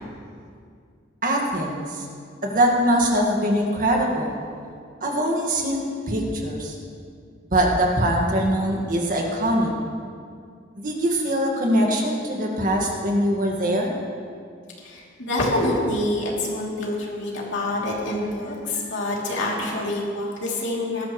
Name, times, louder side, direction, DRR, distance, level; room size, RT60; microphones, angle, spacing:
voice 1, 1.2-2.1 2.4-4.4 5.0-6.8 7.5-9.7 10.8-13.9, right 1 dB, 45° right, 0 dB, 1.8 m, -22 dB
voice 2, 14.8-21.0, left 1 dB, 65° left, -4 dB, 3.0 m, -26 dB
19.0 x 13.0 x 3.2 m, 2.2 s
head